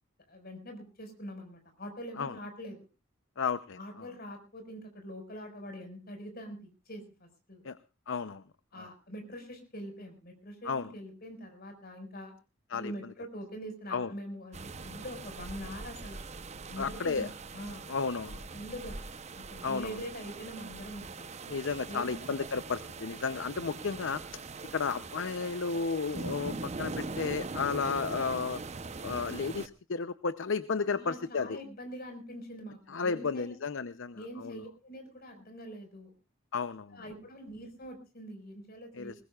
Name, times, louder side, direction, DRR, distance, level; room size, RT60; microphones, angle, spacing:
voice 1, 0.3-2.8 3.8-7.6 8.7-12.3 12.7-16.2 16.6-17.9 18.5-19.0 19.3-21.3 21.9-22.3 30.9-33.5 34.1-36.1 36.9-39.1, equal, 50° left, 5 dB, 5.2 m, -44 dB
voice 2, 3.4-3.8 7.6-7.8 8.1-8.4 10.6-10.9 12.7-12.9 13.9-14.1 16.8-17.3 17.9-18.4 19.6-20.0 21.5-24.4 24.7-28.6 29.0-31.6 32.9-34.6 36.5-37.0 38.9-39.1, left 5 dB, 65° left, 14 dB, 0.6 m, -33 dB
sound 1, 14.5-29.7, right 3 dB, 35° right, 0.8 m, -42 dB
20.5 x 20.0 x 2.4 m, 0.31 s
head